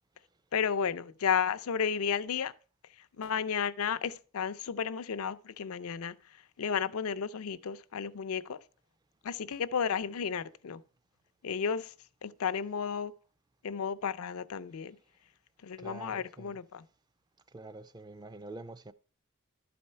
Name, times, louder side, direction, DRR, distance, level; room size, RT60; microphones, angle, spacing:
voice 1, 0.5-2.5 2.8-8.6 9.2-10.8 11.4-11.9 12.2-13.1 13.6-15.0 15.6-16.9, left 7 dB, 75° left, 0.5 m, -33 dB
voice 2, 15.8-16.5 17.5-18.9, right 2 dB, 20° right, 0.4 m, -46 dB
12.0 x 4.3 x 5.5 m
head